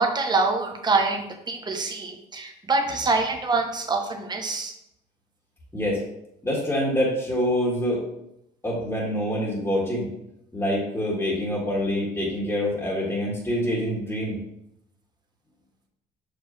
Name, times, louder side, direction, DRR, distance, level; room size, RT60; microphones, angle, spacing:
voice 1, 0.0-4.7, right 3 dB, 25° right, 4 dB, 1.0 m, -25 dB
voice 2, 5.7-6.0 6.4-8.0 8.6-10.1 10.5-14.4, equal, 15° left, -6 dB, 1.9 m, -26 dB
6.1 x 5.0 x 3.2 m, 0.81 s
cardioid pair, 110°, 17 cm